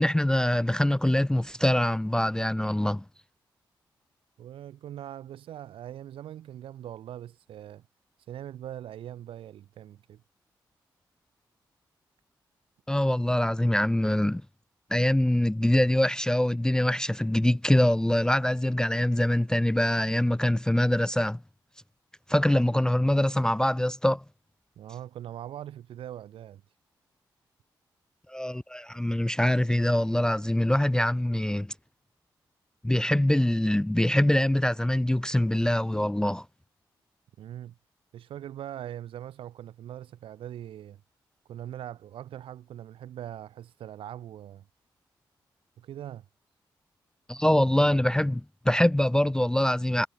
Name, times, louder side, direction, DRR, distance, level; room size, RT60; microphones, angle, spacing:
voice 1, 0.0-3.0 12.9-14.4 14.9-21.4 22.3-24.2 28.3-31.7 32.8-36.4 47.3-50.1, left 1 dB, 10° left, 0.4 m, -24 dB
voice 2, 4.4-7.8 8.2-10.2 24.8-26.6 37.4-37.7 38.1-41.0 41.5-44.7 45.8-46.2, right 11 dB, 80° right, 1.4 m, -41 dB
supercardioid pair, 45°, 9 cm